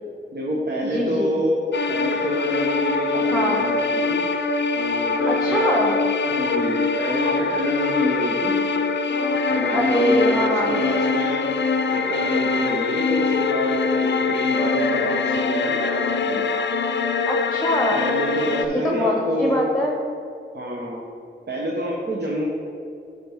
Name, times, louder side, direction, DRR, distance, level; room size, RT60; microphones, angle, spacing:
voice 1, 0.3-1.6 1.9-4.2 4.7-5.8 6.3-8.5 9.5-11.4 11.9-16.4 17.9-19.6 20.5-21.0 21.5-22.4, equal, 60° right, -3 dB, 1.0 m, -27 dB
voice 2, 0.8-1.3 3.3-3.6 5.4-5.9 9.7-10.8 17.3-18.0 18.7-19.9, equal, 5° left, -2 dB, 1.0 m, -23 dB
sound 1, 1.7-18.7, left 4 dB, 65° left, 0.4 m, -23 dB
10.5 x 5.0 x 3.5 m, 2.6 s
wide cardioid pair, 75°, 19 cm